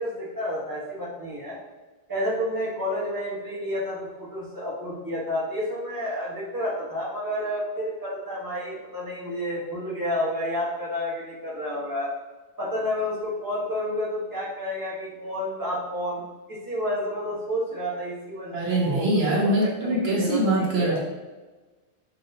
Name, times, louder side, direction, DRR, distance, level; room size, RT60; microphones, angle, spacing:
voice 1, 0.0-1.6 2.1-12.1 12.6-16.2 16.5-19.1 19.4-19.5 19.8-21.0, left 1 dB, 20° right, -6 dB, 1.2 m, -30 dB
voice 2, 18.5-21.0, right 1 dB, 85° right, -4 dB, 1.3 m, -23 dB
5.6 x 2.8 x 2.8 m, 1.2 s
omnidirectional pair, 1.0 m